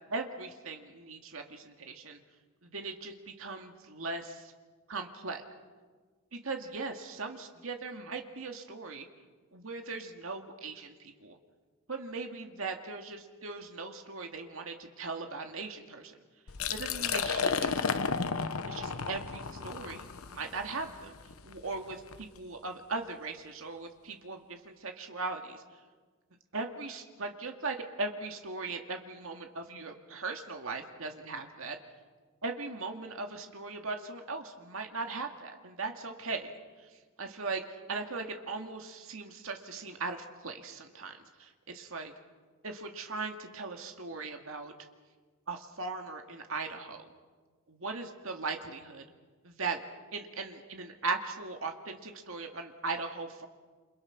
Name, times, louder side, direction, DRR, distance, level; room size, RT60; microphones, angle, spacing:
voice 1, 0.1-2.2 2.6-4.5 4.9-5.4 6.3-9.1 9.5-11.4 11.9-16.2 16.7-17.9 18.7-21.1 21.4-25.6 26.5-31.8 32.4-36.5 37.2-42.1 42.6-44.7 45.5-47.1 47.7-49.0 49.4-49.8 50.1-53.5, right 3 dB, 70° right, 4 dB, 2.2 m, -39 dB
Liquid, 16.5-22.2, left 5 dB, 85° left, 1.0 m, -33 dB
29.0 x 27.0 x 6.0 m, 1.4 s
head